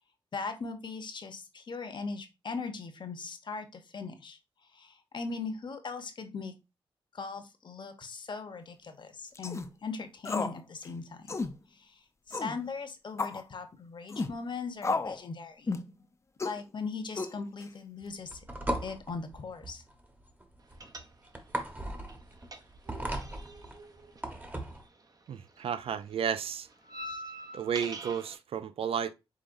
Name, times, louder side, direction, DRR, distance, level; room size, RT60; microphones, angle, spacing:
voice 1, 0.3-4.4 4.7-6.5 7.1-11.3 11.7-12.0 12.3-15.8 16.4-18.4 18.8-19.8 27.0-27.2, left 4 dB, 50° left, 0.9 m, -39 dB
sound 1, 9.4-9.7 10.2-10.6 10.8-10.9 11.3-11.5 12.3-12.6 13.2-13.4 14.1-14.3 14.8-15.2 15.7-15.9 16.4-16.6 17.2-17.6, left 3 dB, 30° left, 0.5 m, -32 dB
sound 2, 18.0-24.9, right 1 dB, 20° right, 1.0 m, -37 dB
sound 3, 20.8-21.6 21.8-25.2 25.5-28.4, right 1 dB, 40° right, 0.7 m, -45 dB
voice 2, 25.3-26.7 27.5-29.1, right 8 dB, 75° right, 0.4 m, -32 dB
5.0 x 3.6 x 2.5 m
cardioid pair, 85°, 10 cm